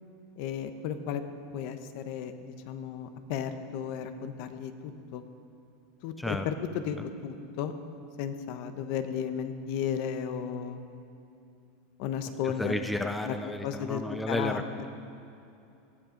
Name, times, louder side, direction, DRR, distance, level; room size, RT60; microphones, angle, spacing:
voice 1, 0.4-1.2 1.5-2.3 2.7-5.2 6.0-7.0 7.2-7.7 8.2-10.8 12.0-12.7 13.2-13.3 13.6-14.0 14.3-14.9, left 8 dB, 55° left, 9 dB, 1.0 m, -34 dB
voice 2, 12.4-14.9, left 1 dB, 5° left, 6 dB, 0.5 m, -32 dB
18.5 x 13.0 x 5.2 m, 2.7 s
supercardioid pair, 155°, 0 cm